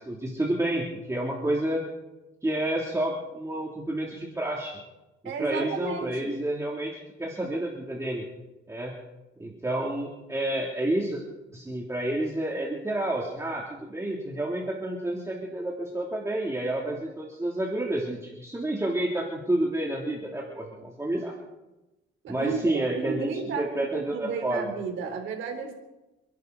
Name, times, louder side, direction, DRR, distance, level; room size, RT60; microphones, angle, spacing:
voice 1, 0.0-1.8 2.4-4.8 5.4-6.9 7.2-8.2 8.7-8.9 9.4-11.2 11.5-21.3 22.3-23.3 23.6-24.7, right 1 dB, 15° right, -2 dB, 3.1 m, -29 dB
voice 2, 5.2-6.3 22.2-25.7, right 5 dB, 80° right, 2 dB, 3.8 m, -33 dB
28.5 x 11.5 x 4.1 m, 1.0 s
cardioid pair, 90°, 20 cm